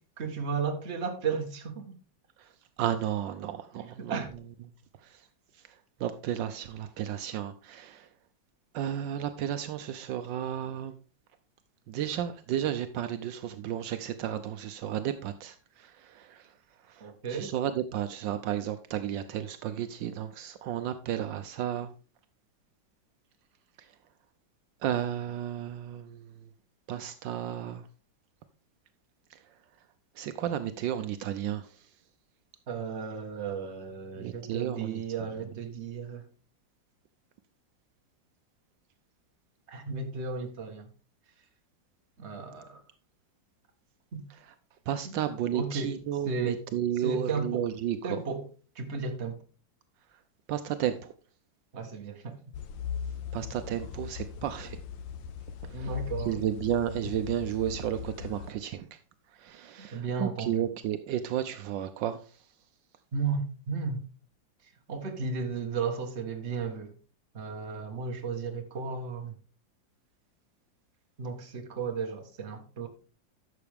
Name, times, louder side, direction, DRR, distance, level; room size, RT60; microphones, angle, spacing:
voice 1, 0.2-1.9 3.8-4.3 17.0-17.5 32.7-36.2 39.7-40.9 42.2-42.8 44.1-44.2 45.0-45.2 45.5-45.9 46.3-46.6 47.0-47.6 48.0-48.4 48.7-49.4 51.7-52.4 55.7-56.4 59.8-60.5 63.1-64.0 64.9-66.9 67.3-69.3 71.2-72.9, right 5 dB, 40° right, 1.5 m, -34 dB
voice 2, 2.8-4.2 5.0-5.3 5.7-8.1 8.7-10.9 11.9-16.5 16.8-21.9 23.8-23.9 24.8-26.5 26.9-27.9 29.3-29.4 30.2-31.9 34.2-35.0 44.4-44.5 44.9-48.2 50.5-51.1 53.3-54.8 55.6-55.9 56.2-59.0 59.3-62.4, right 10 dB, 75° right, 1.3 m, -33 dB
sound 1, 52.5-58.5, left 8 dB, 85° left, 1.4 m, -39 dB
11.5 x 6.9 x 3.5 m
omnidirectional pair, 2.0 m